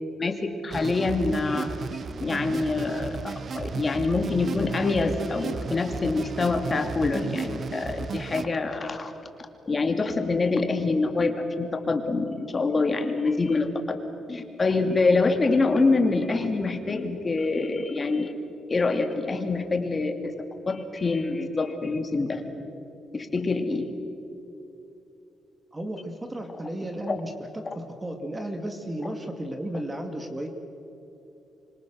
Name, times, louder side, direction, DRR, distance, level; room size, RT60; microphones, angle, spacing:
voice 1, 0.2-1.7 2.2-9.1 9.7-13.7 14.3-18.3 18.7-20.3 20.7-22.4 23.1-23.9, left 3 dB, 35° left, 5 dB, 2.7 m, -25 dB
sound 1, 0.7-8.5, right 5 dB, 50° right, 0.9 m, -34 dB
voice 2, 25.7-30.5, right 1 dB, 20° right, 5 dB, 2.3 m, -34 dB
26.0 x 25.5 x 6.5 m, 3.0 s
cardioid pair, 95°, 0 cm